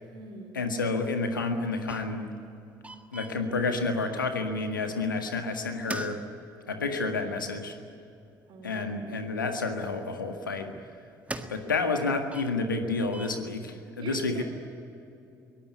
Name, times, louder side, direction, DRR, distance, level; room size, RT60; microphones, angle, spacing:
voice 1, 0.0-0.6 8.5-9.2 14.0-14.4, right 5 dB, 50° right, 4 dB, 4.7 m, -44 dB
voice 2, 0.5-2.3 3.1-6.2 6.7-7.8 8.6-10.7 11.5-14.4, left 3 dB, 80° left, 6 dB, 1.8 m, -30 dB
sound 1, 1.9-2.5 2.8-4.1 5.2-5.3 5.6-7.0 7.9-8.0 9.1-9.2 10.3-11.9 12.3-13.4, right 2 dB, 10° right, 1.7 m, -41 dB
23.0 x 19.0 x 9.6 m, 2.6 s
figure-of-eight pair, 55°, 11 cm